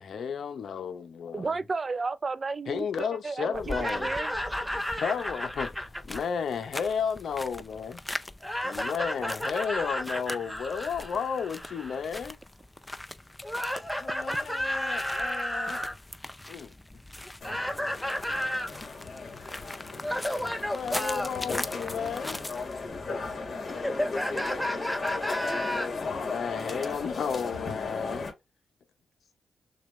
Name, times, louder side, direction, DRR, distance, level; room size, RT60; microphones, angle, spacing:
voice 1, 0.0-1.5 2.7-4.1 5.0-5.7 6.1-8.0 8.6-12.4 14.0-15.8 16.5-16.7 20.7-22.4 26.2-28.3, left 6 dB, 75° left, 0.8 m, -33 dB
voice 2, 1.3-4.3, right 4 dB, 45° right, 0.5 m, -33 dB
sound 1, 3.5-22.9, left 1 dB, 15° left, 0.5 m, -42 dB
voice 3, 3.6-5.9 8.4-12.0 13.4-16.0 17.4-18.7 19.4-19.6 20.0-21.3 23.7-25.9, equal, ahead, 1.4 m, -32 dB
sound 2, 17.4-28.3, left 3 dB, 55° left, 2.0 m, -36 dB
6.4 x 2.5 x 3.2 m
cardioid pair, 70°, 0 cm